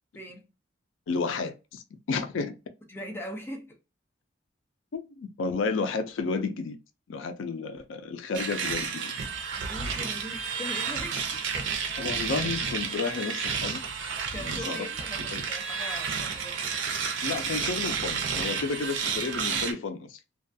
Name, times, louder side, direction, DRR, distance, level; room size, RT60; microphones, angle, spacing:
voice 1, 0.1-0.5 2.9-3.8 9.6-11.7 14.3-16.7, left 1 dB, 10° left, 0.5 m, -41 dB
voice 2, 1.1-2.6 4.9-6.8 7.1-8.9 9.4-9.6 12.0-13.8 14.4-14.9 15.2-15.5 17.2-20.2, left 4 dB, 80° left, 0.4 m, -32 dB
sound 1, 8.3-19.7, right 6 dB, 75° right, 0.5 m, -31 dB
2.4 x 2.2 x 2.5 m
head